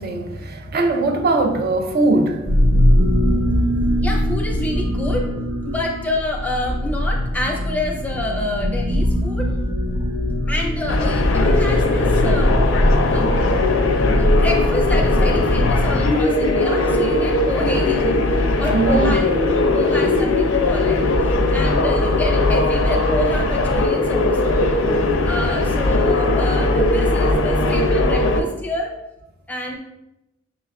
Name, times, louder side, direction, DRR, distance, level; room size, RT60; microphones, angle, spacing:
voice 1, 0.0-3.9 12.8-13.4 18.7-19.2, right 2 dB, 50° right, 0.4 m, -22 dB
sound 1, 2.5-15.9, equal, 85° right, 1.0 m, -21 dB
voice 2, 4.0-5.3 5.6-9.5 10.5-12.6 13.1-13.3 14.0-18.2 18.6-19.2 19.7-24.6 25.3-28.9 29.5-29.8, left 2 dB, 10° left, 0.5 m, -28 dB
sound 2, 10.9-28.4, left 2 dB, 70° left, 0.5 m, -19 dB
6.0 x 2.3 x 2.3 m
head